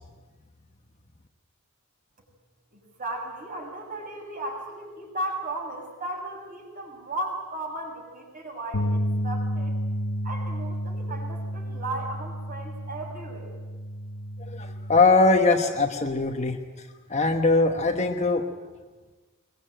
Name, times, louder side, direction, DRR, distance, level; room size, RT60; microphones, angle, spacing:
voice 1, 2.7-9.8 10.2-13.5, right 1 dB, 40° right, 1 dB, 6.4 m, -35 dB
sound 1, 8.7-15.0, equal, 75° left, 0.9 m, -31 dB
voice 2, 14.5-16.6 17.1-18.5, left 3 dB, 30° left, 4 dB, 1.2 m, -21 dB
22.0 x 21.0 x 9.0 m, 1.3 s
head